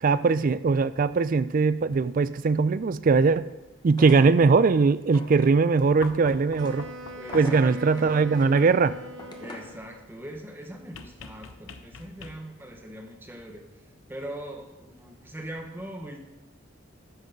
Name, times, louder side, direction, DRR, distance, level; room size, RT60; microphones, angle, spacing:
voice 1, 0.0-3.4 3.8-6.9 7.3-9.0, right 4 dB, 45° right, 16 dB, 0.4 m, -21 dB
sound 1, 3.9-9.8, left 1 dB, 20° left, 1.1 m, -45 dB
sound 2, 6.0-7.8 10.9-12.7 14.2-14.3, left 4 dB, 75° left, 0.7 m, -43 dB
Wind instrument woodwind instrument, 6.5-10.1, equal, 75° right, 0.8 m, -41 dB
voice 2, 7.1-8.1 9.4-16.3, right 1 dB, 10° right, 3 dB, 0.9 m, -41 dB
13.5 x 6.3 x 5.2 m, 1.1 s
head